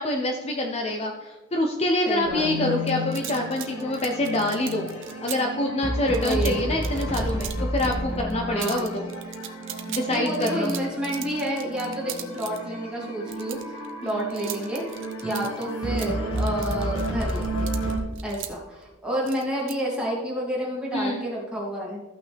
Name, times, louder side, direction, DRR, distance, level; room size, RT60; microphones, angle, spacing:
voice 1, 0.0-4.9 5.2-9.0 9.9-10.7 14.0-14.1 20.9-21.2, left 1 dB, 30° left, 2 dB, 0.6 m, -26 dB
voice 2, 2.1-2.7 6.2-6.7 8.5-9.0 10.1-14.8 15.2-17.8 18.2-22.0, equal, 5° right, -5 dB, 2.4 m, -30 dB
sound 1, 2.2-18.0, equal, 85° left, 1.7 m, -31 dB
sound 2, 2.9-5.4 6.1-6.5 6.8-7.9 8.2-8.3 8.6-12.6 13.3-15.6 16.0-18.5 19.3-19.7, right 12 dB, 60° right, 0.8 m, -38 dB
14.0 x 5.9 x 3.4 m, 1.2 s
head